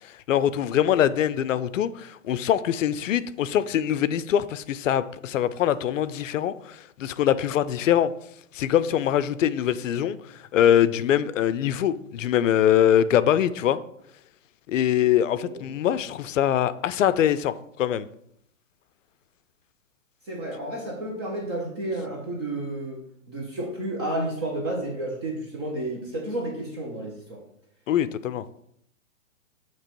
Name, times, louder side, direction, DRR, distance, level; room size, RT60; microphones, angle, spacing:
voice 1, 0.3-8.1 8.5-10.2 10.5-13.8 14.7-18.1 27.9-28.4, left 10 dB, 70° left, 15 dB, 0.5 m, -23 dB
voice 2, 20.3-23.0 23.3-27.4, right 1 dB, 20° right, -1 dB, 0.5 m, -31 dB
7.5 x 3.0 x 4.4 m, 0.72 s
hypercardioid pair, 155°, 40 cm